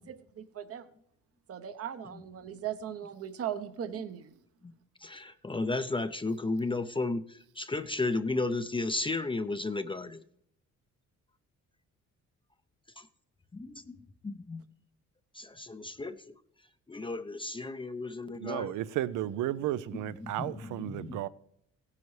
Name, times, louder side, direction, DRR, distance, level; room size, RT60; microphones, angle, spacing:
voice 1, 0.1-0.8 1.5-4.3, right 9 dB, 50° right, 0.9 m, -38 dB
voice 2, 5.0-10.2 13.0-13.1 13.5-14.0 14.2-14.6 15.3-16.3 16.9-18.7 20.2-21.2, left 3 dB, 15° left, 0.5 m, -34 dB
voice 3, 18.4-21.3, right 13 dB, 85° right, 0.6 m, -33 dB
16.0 x 9.6 x 3.2 m
cardioid pair, 90°, 30 cm